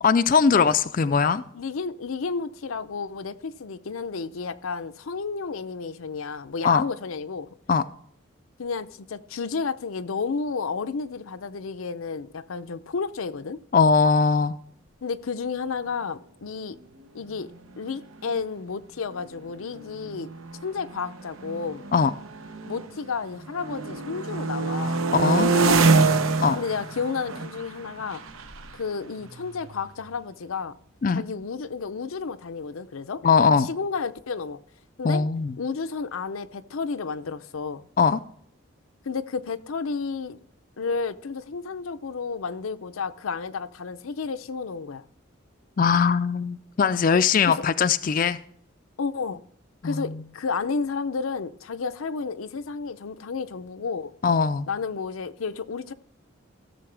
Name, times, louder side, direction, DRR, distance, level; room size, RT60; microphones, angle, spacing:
voice 1, 0.0-1.4 6.6-6.8 7.7-7.8 13.7-14.5 21.9-22.1 25.1-25.5 26.4-26.6 31.0-31.2 33.2-33.7 35.0-35.6 38.0-38.2 45.8-48.4 49.8-50.2 54.2-54.7, left 5 dB, 40° left, 0.3 m, -20 dB
voice 2, 1.5-7.5 8.6-13.6 15.0-16.8 17.1-17.5 17.8-20.3 20.6-21.8 22.6-25.0 25.3-26.2 26.6-28.2 28.7-30.7 31.1-33.2 33.5-34.6 35.0-35.2 35.6-37.8 39.1-40.4 40.8-45.0 47.5-47.6 49.0-49.4 49.8-54.1 54.7-55.9, left 5 dB, 90° left, 0.6 m, -31 dB
sound 1, 17.7-17.8 18.0-18.4 19.1-23.1 23.4-30.1, right 4 dB, 90° right, 0.9 m, -26 dB
16.0 x 6.9 x 3.3 m
head